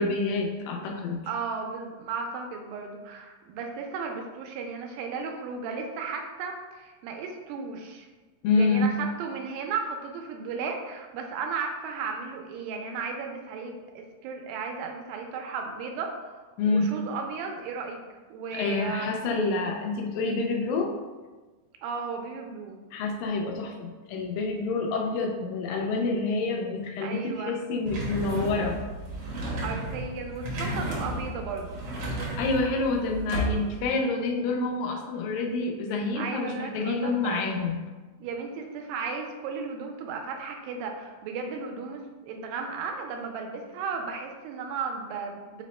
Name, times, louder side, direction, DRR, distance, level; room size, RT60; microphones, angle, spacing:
voice 1, 0.0-1.2 8.4-9.0 16.6-17.0 18.5-20.9 22.9-28.8 32.4-37.8, left 3 dB, 90° left, 2 dB, 2.4 m, -27 dB
voice 2, 1.3-8.1 8.5-18.0 18.3-19.3 21.8-22.8 27.0-27.5 29.6-31.8 36.1-37.4 38.2-45.6, right 5 dB, 85° right, 2 dB, 2.3 m, -35 dB
sound 1, 27.9-33.9, right 1 dB, 70° right, 1.4 m, -33 dB
5.6 x 2.1 x 4.2 m, 1.3 s
omnidirectional pair, 4.0 m